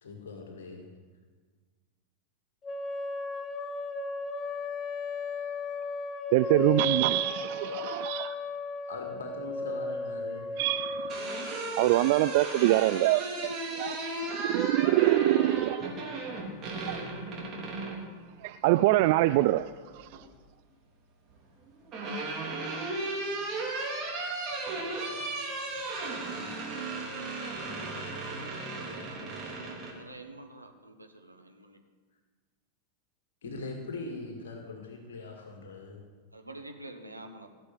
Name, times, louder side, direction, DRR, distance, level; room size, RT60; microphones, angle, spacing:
voice 1, 0.0-0.9 8.9-10.5 33.4-36.0, left 3 dB, 60° left, 2.1 m, -41 dB
sound 1, 2.6-11.6, left 3 dB, 25° left, 0.9 m, -35 dB
voice 2, 6.3-8.3 10.6-11.2 11.8-14.0 14.4-15.9 16.9-17.0 18.4-20.2, right 16 dB, 50° right, 0.3 m, -25 dB
sound 2, 10.8-18.0 19.5-20.2 21.4-29.9, right 2 dB, 30° right, 3.4 m, -35 dB
voice 3, 29.9-31.8 36.3-37.5, right 2 dB, 85° right, 1.5 m, -47 dB
17.5 x 7.5 x 8.3 m
figure-of-eight pair, 90°, 0 cm